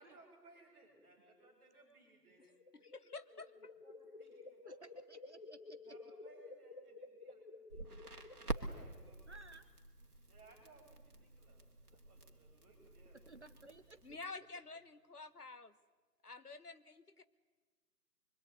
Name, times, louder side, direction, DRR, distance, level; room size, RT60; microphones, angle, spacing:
voice 1, 0.0-2.5 3.8-4.8 5.8-7.8 8.3-9.3 10.3-13.2, right 2 dB, 10° right, 5.1 m, -64 dB
sound 1, 2.4-9.1, left 3 dB, 25° left, 2.0 m, -54 dB
voice 2, 2.7-3.7 14.0-15.7 16.2-17.2, left 3 dB, 65° left, 1.4 m, -50 dB
voice 3, 4.7-5.8 9.3-9.7 13.3-14.0, right 3 dB, 45° right, 1.3 m, -57 dB
Crackle, 7.7-14.2, right 3 dB, 65° right, 3.0 m, -48 dB
24.5 x 24.5 x 9.6 m
figure-of-eight pair, 160°, 49 cm